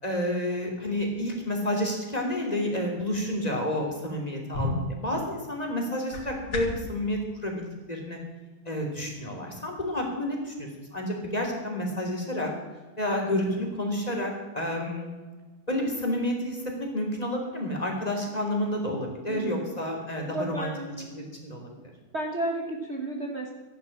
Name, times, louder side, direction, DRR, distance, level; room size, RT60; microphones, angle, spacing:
voice 1, 0.0-8.2 8.6-12.5 13.0-15.1 15.7-20.7 21.2-21.7, left 1 dB, 15° left, 0 dB, 3.1 m, -30 dB
sound 1, 4.5-6.9, left 2 dB, 80° left, 3.6 m, -34 dB
voice 2, 19.3-19.7 20.3-21.2 22.1-23.5, right 1 dB, 35° right, 1 dB, 1.6 m, -32 dB
14.5 x 11.0 x 7.3 m, 1.3 s
omnidirectional pair, 2.3 m